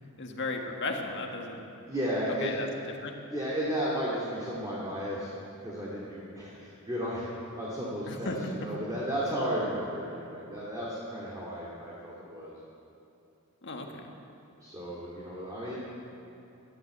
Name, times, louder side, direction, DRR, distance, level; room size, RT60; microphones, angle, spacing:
voice 1, 0.2-1.6 2.4-2.7 3.0-3.1 8.1-8.4 13.6-13.9, left 3 dB, 55° left, 2 dB, 1.7 m, -34 dB
voice 2, 1.9-2.6 3.3-5.3 5.6-7.3 7.5-12.6 14.6-15.8, equal, 15° right, -6 dB, 2.4 m, -34 dB
14.5 x 12.0 x 8.1 m, 2.9 s
head